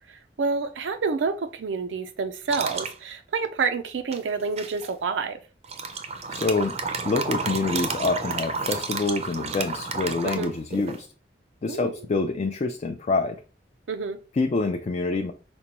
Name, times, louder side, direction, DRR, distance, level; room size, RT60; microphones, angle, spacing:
voice 1, 0.1-5.4 10.2-10.5 11.7-11.9 13.9-14.2, right 4 dB, 90° right, 0.4 m, -28 dB
sound 1, 2.5-2.9 4.1-4.9 5.6-11.0, right 4 dB, 35° right, 0.5 m, -31 dB
voice 2, 6.3-6.8 7.0-11.1 11.6-13.4 14.3-15.3, left 3 dB, 40° left, 0.3 m, -26 dB
5.1 x 2.2 x 2.9 m
head